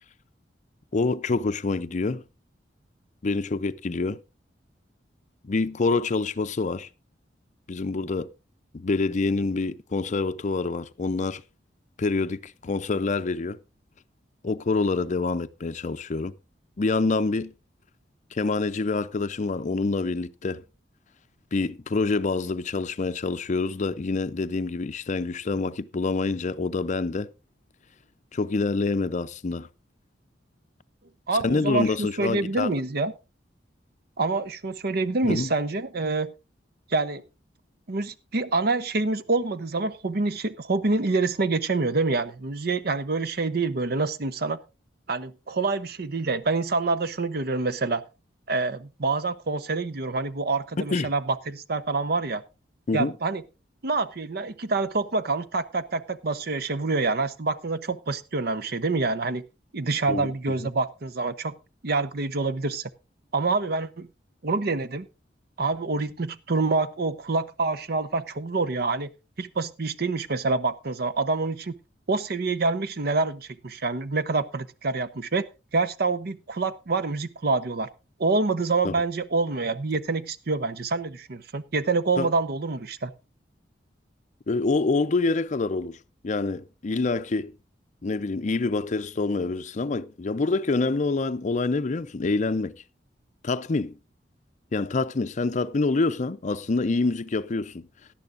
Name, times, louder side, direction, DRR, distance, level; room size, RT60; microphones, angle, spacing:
voice 1, 0.9-2.2 3.2-4.2 5.4-6.9 7.7-8.3 8.7-11.4 12.0-13.6 14.4-16.3 16.8-17.5 18.3-20.6 21.5-27.3 28.3-29.7 31.4-32.7 35.2-35.5 50.9-51.1 52.9-53.1 60.1-60.3 60.6-60.7 78.8-78.9 82.2-82.3 84.5-86.0 86.2-87.5 88.0-92.7 93.4-94.0 94.7-97.9, left 3 dB, 40° left, 0.5 m, -26 dB
voice 2, 31.3-33.1 34.2-36.3 36.9-37.2 37.9-44.6 45.1-48.0 48.5-52.4 52.9-53.4 53.8-59.4 59.7-61.5 61.8-62.9 63.3-64.1 64.4-65.1 65.6-69.1 69.4-71.7 72.1-75.5 75.7-77.9 78.2-83.1, right 3 dB, 60° right, 0.8 m, -26 dB
17.5 x 11.5 x 2.5 m
head